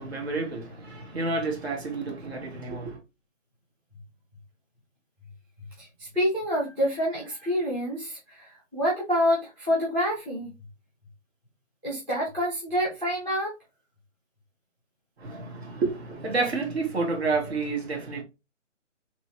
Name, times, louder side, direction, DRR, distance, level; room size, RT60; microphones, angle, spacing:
voice 1, 0.0-3.0 15.2-18.2, right 3 dB, 55° right, 1.7 m, -30 dB
voice 2, 5.8-10.5 11.8-13.5, equal, 10° right, 0.7 m, -27 dB
3.5 x 3.1 x 3.0 m
figure-of-eight pair, 155°, 38 cm